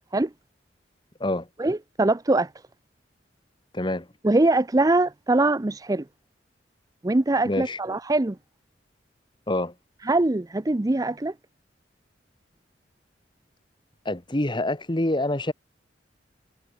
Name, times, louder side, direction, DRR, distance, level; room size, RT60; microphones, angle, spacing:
voice 1, 1.6-2.5 4.2-6.0 7.0-8.4 10.1-11.3, right 2 dB, 20° right, 0.5 m, -22 dB
voice 2, 3.7-4.1 7.4-7.8 9.5-9.7 14.0-15.5, left 1 dB, 25° left, 1.5 m, -26 dB
head